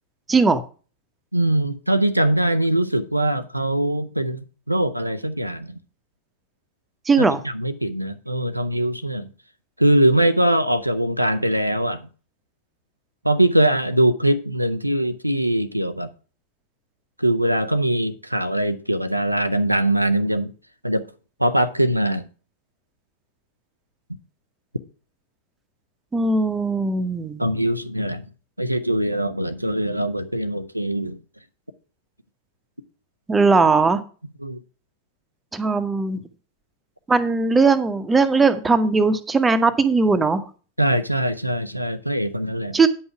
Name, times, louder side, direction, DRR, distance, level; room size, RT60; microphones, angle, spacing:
voice 1, 0.3-0.6 7.1-7.4 26.1-27.5 33.3-34.0 35.5-36.2 37.1-40.5 42.7-42.9, right 4 dB, 15° right, 1.0 m, -19 dB
voice 2, 1.3-5.8 7.2-9.3 9.8-12.0 13.2-16.1 17.2-20.5 20.8-21.1 21.4-22.3 27.4-28.2 28.6-31.2 34.4-34.6 40.8-42.8, right 1 dB, 90° right, 0.6 m, -22 dB
9.7 x 5.6 x 5.8 m
figure-of-eight pair, 90°, 0 cm